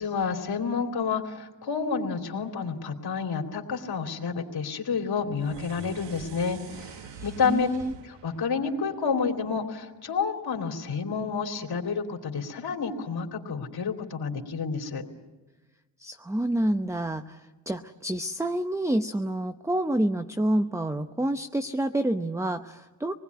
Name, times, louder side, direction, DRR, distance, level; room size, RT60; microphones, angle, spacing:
voice 1, 0.0-7.7 8.0-15.0, left 5 dB, 60° left, 3 dB, 3.1 m, -29 dB
sound 1, 5.4-9.8, right 6 dB, 75° right, 1.5 m, -46 dB
voice 2, 7.1-7.9 16.0-23.1, right 1 dB, 5° right, 9 dB, 0.8 m, -28 dB
27.0 x 20.0 x 9.6 m, 1.2 s
cardioid pair, 90°, 43 cm